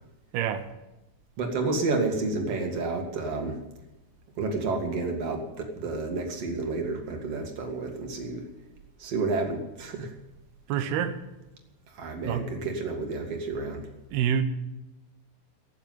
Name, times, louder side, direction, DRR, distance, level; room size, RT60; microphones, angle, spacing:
voice 1, 0.3-0.7 10.7-11.2 12.3-12.6 14.1-14.4, right 8 dB, 75° right, 9 dB, 2.8 m, -27 dB
voice 2, 1.4-3.6 4.4-8.5 9.0-10.1 11.9-13.9, right 3 dB, 45° right, 3 dB, 2.5 m, -30 dB
17.0 x 7.3 x 9.3 m, 1.0 s
omnidirectional pair, 4.8 m